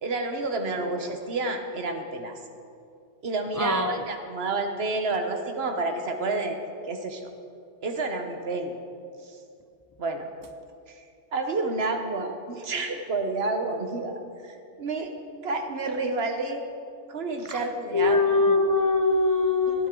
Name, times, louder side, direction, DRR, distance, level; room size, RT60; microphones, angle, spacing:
voice 1, 0.0-2.4 3.2-6.6 6.8-7.3 7.8-8.7 9.2-9.4 10.0-10.3 10.9-11.0 11.3-15.1 15.4-16.6 17.1-18.4 19.7-19.9, right 3 dB, 65° right, 5 dB, 1.3 m, -30 dB
voice 2, 3.6-4.0 17.5-17.6 17.9-19.9, left 3 dB, 30° left, 5 dB, 0.4 m, -22 dB
17.5 x 10.0 x 3.8 m, 2.4 s
omnidirectional pair, 1.1 m